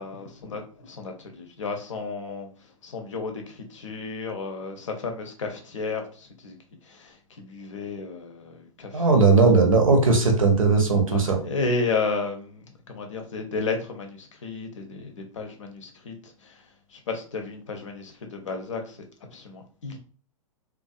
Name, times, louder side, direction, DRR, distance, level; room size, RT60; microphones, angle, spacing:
voice 1, 0.0-6.5 6.8-9.2 11.1-19.0 19.3-20.0, left 3 dB, 60° left, 0.6 m, -33 dB
voice 2, 8.9-11.4, right 4 dB, 70° right, 0.7 m, -18 dB
2.5 x 2.2 x 2.3 m
figure-of-eight pair, 105°, 18 cm